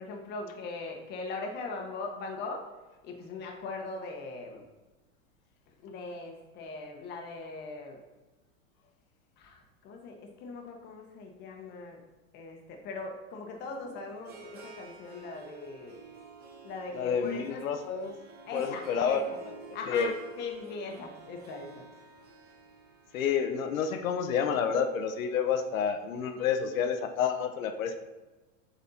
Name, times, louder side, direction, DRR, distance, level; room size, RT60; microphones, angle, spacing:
voice 1, 0.0-2.7 3.0-4.6 5.8-8.0 9.4-12.0 12.3-16.0 16.6-17.6 18.5-19.4 19.7-21.9, left 3 dB, 25° left, 2 dB, 1.1 m, -40 dB
Harp, 13.6-25.7, right 3 dB, 25° right, 1.1 m, -51 dB
voice 2, 16.9-18.2 18.5-19.2 19.9-20.1 23.1-28.0, left 7 dB, 80° left, 7 dB, 1.0 m, -29 dB
7.9 x 4.2 x 4.2 m, 1.2 s
supercardioid pair, 155°, 40 cm